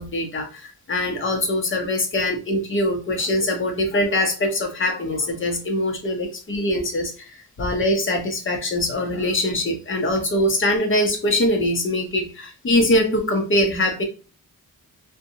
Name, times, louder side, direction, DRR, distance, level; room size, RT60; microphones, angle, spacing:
voice 1, 0.0-14.0, left 1 dB, 35° left, 3 dB, 0.7 m, -23 dB
2.7 x 2.2 x 2.6 m, 0.34 s
wide cardioid pair, 140°, 34 cm